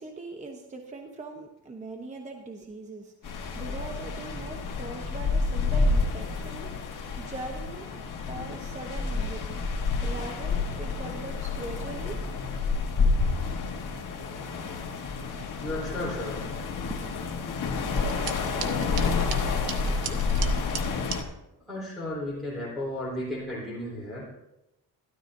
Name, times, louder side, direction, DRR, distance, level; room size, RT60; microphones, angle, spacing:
voice 1, 0.0-9.6 10.0-12.2 16.9-17.1 18.0-18.3 18.6-20.2, right 3 dB, 20° right, 2 dB, 0.9 m, -41 dB
sound 1, 3.2-21.2, left 4 dB, 60° left, 1.4 m, -29 dB
voice 2, 15.6-16.5 21.7-24.3, left 1 dB, ahead, -9 dB, 3.8 m, -34 dB
sound 2, 18.0-21.2, right 8 dB, 75° right, 1.0 m, -38 dB
13.0 x 13.0 x 2.6 m, 0.91 s
cardioid pair, 155°, 37 cm